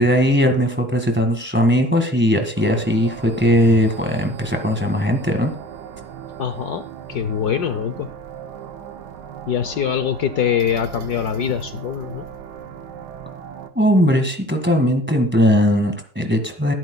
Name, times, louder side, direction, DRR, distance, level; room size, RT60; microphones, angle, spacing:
voice 1, 0.0-5.5 13.7-16.7, equal, 5° right, 5 dB, 1.6 m, -18 dB
sound 1, 2.6-13.7, right 8 dB, 65° right, 1.5 m, -37 dB
voice 2, 6.4-6.8 7.1-8.1 9.5-12.3, left 8 dB, 65° left, 10 dB, 1.2 m, -23 dB
21.5 x 11.0 x 2.3 m, 0.43 s
omnidirectional pair, 2.0 m